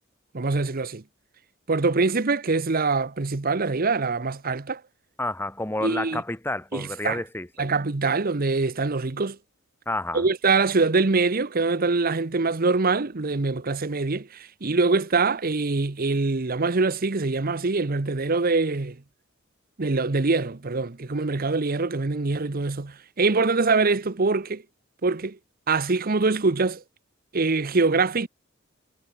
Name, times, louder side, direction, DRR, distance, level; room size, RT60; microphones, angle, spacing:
voice 1, 0.3-1.0 1.7-4.8 5.8-6.2 6.7-7.2 7.6-9.4 10.1-19.0 19.8-24.6 25.0-25.4 25.7-26.8 27.3-28.3, right 3 dB, 45° right, 0.9 m, -24 dB
voice 2, 5.2-7.7 9.9-10.3, left 1 dB, 10° left, 1.4 m, -30 dB
head